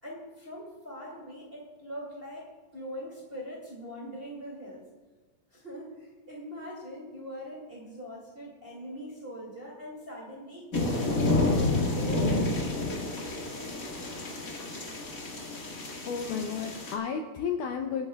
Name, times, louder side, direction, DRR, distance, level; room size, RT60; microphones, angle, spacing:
voice 1, 0.0-4.8 5.5-12.9, equal, 20° right, -3 dB, 1.8 m, -42 dB
sound 1, 10.7-16.9, left 2 dB, 35° left, 1.4 m, -29 dB
voice 2, 16.1-18.1, left 6 dB, 75° left, 4 dB, 2.0 m, -32 dB
24.5 x 9.1 x 2.3 m, 1.4 s
omnidirectional pair, 4.3 m